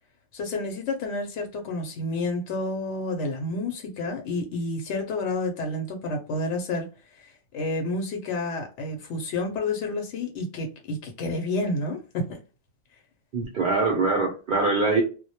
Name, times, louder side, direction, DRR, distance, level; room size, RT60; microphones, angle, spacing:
voice 1, 0.3-6.9 7.1-12.4, left 2 dB, 85° left, 0.9 m, -30 dB
voice 2, 13.3-15.0, right 3 dB, 55° right, 0.7 m, -23 dB
2.2 x 2.1 x 2.7 m
omnidirectional pair, 1.2 m